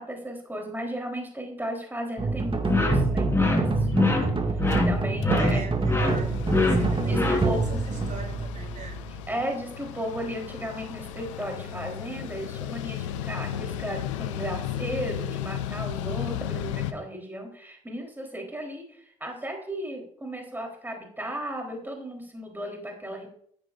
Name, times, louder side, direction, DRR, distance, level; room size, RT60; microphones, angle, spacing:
voice 1, 0.0-4.2 4.9-5.6 7.1-7.8 9.3-23.3, equal, 10° right, 1 dB, 3.7 m, -35 dB
sound 1, 2.2-9.4, right 3 dB, 35° right, 2.1 m, -27 dB
sound 2, 2.7-7.8, left 2 dB, 15° left, 4.1 m, -25 dB
Mechanical fan, 3.9-4.0 4.3-4.4 4.6-16.9, left 10 dB, 90° left, 0.7 m, -35 dB
voice 2, 5.3-9.0, right 4 dB, 55° right, 1 dB, 5.1 m, -41 dB
14.0 x 10.0 x 2.6 m, 0.64 s
hypercardioid pair, 45°, 16 cm